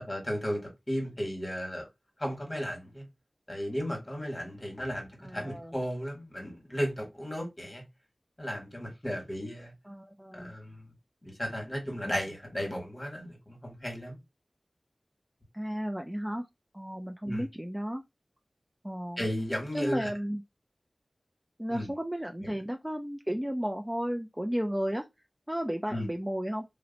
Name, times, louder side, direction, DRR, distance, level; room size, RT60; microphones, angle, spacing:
voice 1, 0.1-1.9 2.2-3.1 3.5-7.8 8.4-9.7 10.3-10.9 11.2-14.2 17.2-17.4 19.2-20.1 21.7-21.9 22.4-22.5 25.9-26.1, equal, 25° left, 1.5 m, -35 dB
voice 2, 5.2-5.8 9.8-10.5 15.5-16.5 16.7-18.0 18.8-19.3 19.7-20.4 21.6-25.0 25.5-26.6, equal, 10° right, 0.4 m, -33 dB
2.6 x 2.1 x 3.9 m
wide cardioid pair, 60°, 0 cm